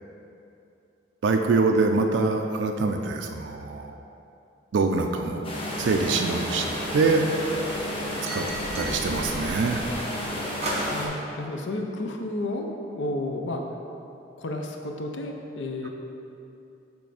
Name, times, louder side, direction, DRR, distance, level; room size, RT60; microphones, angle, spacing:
voice 1, 1.2-4.0 4.7-5.4 5.8-6.7 6.9-7.3 8.3-8.5 8.8-9.9, right 3 dB, 80° right, 4 dB, 0.4 m, -24 dB
sound 1, 5.4-11.1, equal, 30° left, 0.8 m, -31 dB
sound 2, 6.8-7.2 8.3-9.0 10.6-11.0, right 1 dB, 35° right, 0.7 m, -33 dB
voice 2, 10.5-12.7 13.0-13.6 14.4-15.9, left 2 dB, 80° left, 3 dB, 0.6 m, -32 dB
6.2 x 3.4 x 4.9 m, 2.7 s
head